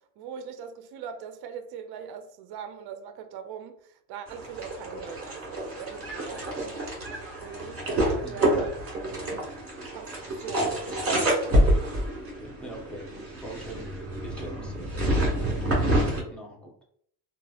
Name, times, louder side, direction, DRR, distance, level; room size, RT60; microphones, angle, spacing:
voice 1, 0.2-6.8 7.4-7.8 8.1-8.8 9.9-10.8 11.0-12.0, right 7 dB, 55° right, 0.5 m, -41 dB
sound 1, 4.3-16.2, right 1 dB, 30° right, 1.5 m, -28 dB
voice 2, 6.3-6.7 8.2-8.6 12.4-13.9 14.2-14.9 15.6-16.8, right 1 dB, ahead, 0.8 m, -43 dB
3.1 x 2.4 x 2.3 m
cardioid pair, 100°, 47 cm